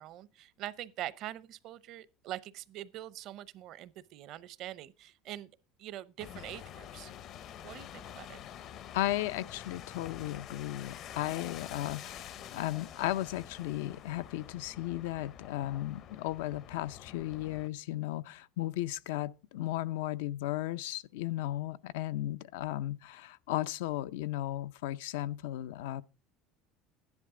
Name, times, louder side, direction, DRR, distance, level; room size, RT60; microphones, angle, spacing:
voice 1, 0.0-5.5 5.8-7.1 7.6-8.4, right 13 dB, 55° right, 0.7 m, -44 dB
sound 1, 6.2-17.7, left 10 dB, 50° left, 0.6 m, -47 dB
voice 2, 8.9-26.0, left 15 dB, 90° left, 0.5 m, -35 dB
12.5 x 10.5 x 3.7 m
supercardioid pair, 125°, 0 cm